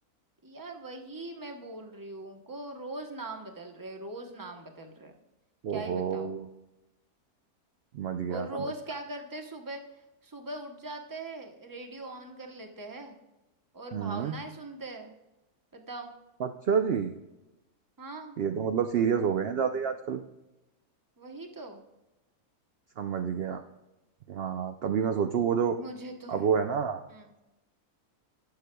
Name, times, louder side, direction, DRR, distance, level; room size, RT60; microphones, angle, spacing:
voice 1, 0.4-5.1 5.7-6.4 8.3-9.8 10.2-13.2 13.7-15.1 15.7-16.1 18.0-18.4 21.2-21.8 25.8-26.5 27.1-27.3, right 2 dB, 15° right, 3 dB, 0.8 m, -41 dB
voice 2, 5.6-6.5 7.9-8.7 13.9-14.3 16.4-17.1 18.4-20.2 23.0-23.6 24.3-25.8 26.3-27.0, right 7 dB, 65° right, 6 dB, 0.6 m, -28 dB
18.5 x 6.6 x 2.2 m, 0.98 s
omnidirectional pair, 1.6 m